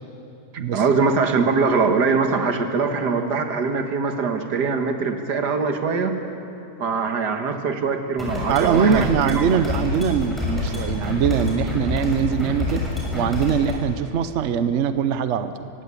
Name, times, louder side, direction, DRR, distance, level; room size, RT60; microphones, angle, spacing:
voice 1, 0.5-6.2 6.8-9.5, right 4 dB, 80° right, 6 dB, 2.1 m, -22 dB
sound 1, 8.2-13.7, left 3 dB, ahead, 6.6 m, -27 dB
voice 2, 8.5-15.7, right 7 dB, 55° right, 11 dB, 0.9 m, -22 dB
23.5 x 16.0 x 9.7 m, 2.8 s
omnidirectional pair, 1.8 m